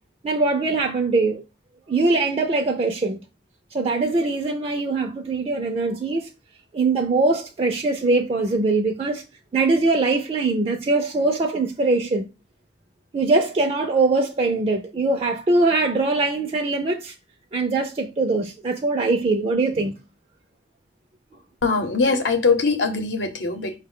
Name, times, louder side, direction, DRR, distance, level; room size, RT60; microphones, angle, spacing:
voice 1, 0.2-1.4 1.9-3.2 3.7-6.3 6.7-9.2 9.5-12.3 13.1-17.1 17.5-19.9, right 3 dB, 35° right, 0.4 m, -22 dB
voice 2, 21.6-23.8, left 4 dB, 90° left, 0.8 m, -21 dB
5.2 x 2.2 x 3.6 m
head